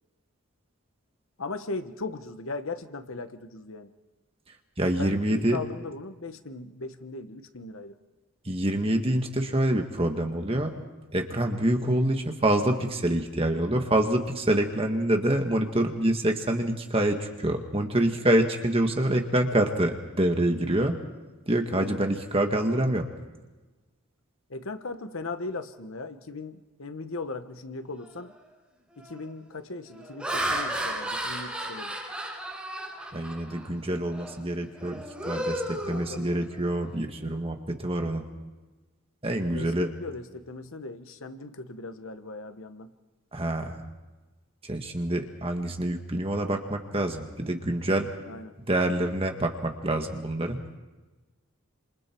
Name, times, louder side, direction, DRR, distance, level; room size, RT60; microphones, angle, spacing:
voice 1, 1.4-3.9 5.0-8.0 21.7-22.0 24.5-28.3 29.0-32.0 35.9-36.4 39.5-42.9 48.3-48.5, left 3 dB, 70° left, 9 dB, 1.1 m, -38 dB
voice 2, 4.8-5.6 8.4-10.8 11.1-21.0 21.5-23.0 33.1-38.2 39.2-39.9 43.3-43.8 44.6-48.1 48.7-50.6, right 1 dB, 25° right, 4 dB, 1.7 m, -26 dB
Laughter, 28.1-28.4 29.0-29.3 29.9-33.7 34.1-34.4 34.7-36.7, right 1 dB, 5° right, 4.7 m, -33 dB
28.5 x 27.0 x 4.5 m, 1.2 s
head